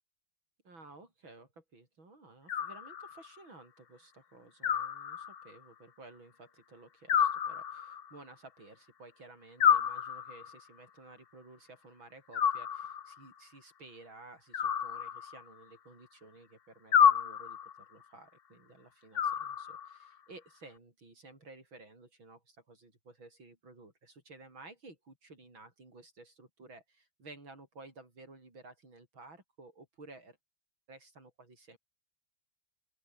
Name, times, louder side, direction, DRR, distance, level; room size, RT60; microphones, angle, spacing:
voice 1, 0.6-30.4 30.9-31.8, right 2 dB, 90° right, 7.5 m, -54 dB
Animal, 2.5-3.4 4.6-5.6 7.1-8.2 9.6-10.6 12.3-13.2 14.5-15.6 16.9-17.8 19.1-20.1, left 8 dB, 65° left, 0.5 m, -29 dB
open air
omnidirectional pair, 2.1 m